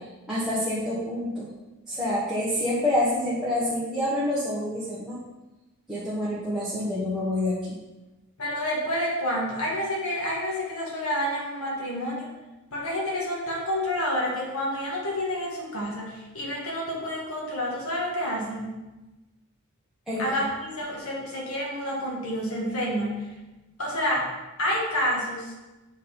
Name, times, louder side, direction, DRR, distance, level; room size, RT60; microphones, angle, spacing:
voice 1, 0.3-1.4 1.9-5.2 5.9-7.8 20.1-20.2, left 1 dB, ahead, -10 dB, 1.2 m, -27 dB
voice 2, 8.4-12.3 12.7-18.7 20.2-23.3 23.8-24.3 24.6-25.5, equal, 80° left, -3 dB, 1.7 m, -29 dB
7.4 x 4.0 x 4.4 m, 1.1 s
head